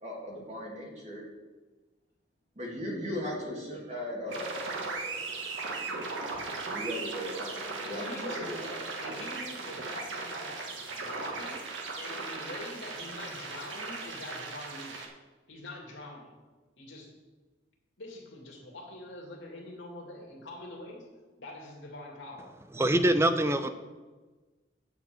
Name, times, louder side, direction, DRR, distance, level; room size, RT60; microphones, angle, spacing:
voice 1, 0.0-1.2 2.6-6.1 6.7-8.9, equal, 35° right, -1 dB, 2.1 m, -38 dB
sound 1, 4.3-15.1, right 3 dB, 80° right, 1.6 m, -37 dB
voice 2, 7.8-11.6 11.9-15.1 15.5-16.4 16.8-17.2 18.0-21.1 21.4-22.5, left 1 dB, 80° left, -1 dB, 2.5 m, -44 dB
voice 3, 22.7-23.7, right 1 dB, 15° right, 9 dB, 0.5 m, -24 dB
9.4 x 5.2 x 7.7 m, 1.3 s
head